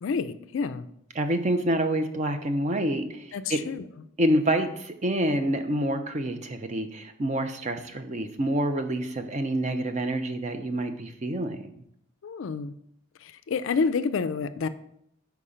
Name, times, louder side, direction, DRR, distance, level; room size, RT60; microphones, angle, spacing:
voice 1, 0.0-0.9 3.3-3.8 12.2-12.8 13.2-14.7, left 5 dB, 60° left, 13 dB, 0.3 m, -29 dB
voice 2, 1.2-3.6 4.2-11.6, right 1 dB, 35° right, 7 dB, 0.5 m, -27 dB
5.5 x 4.7 x 5.0 m, 0.74 s
head